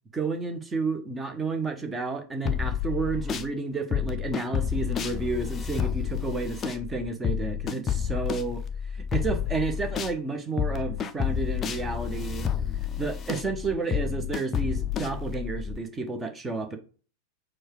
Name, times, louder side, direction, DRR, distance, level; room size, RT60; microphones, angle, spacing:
voice 1, 0.1-8.6 9.1-12.5 13.0-16.8, right 3 dB, 15° right, 0.9 m, -31 dB
sound 1, 2.5-3.5 3.9-10.2 10.6-15.8, left 8 dB, 25° left, 0.5 m, -30 dB
4.5 x 2.4 x 4.8 m
figure-of-eight pair, 90°, 0 cm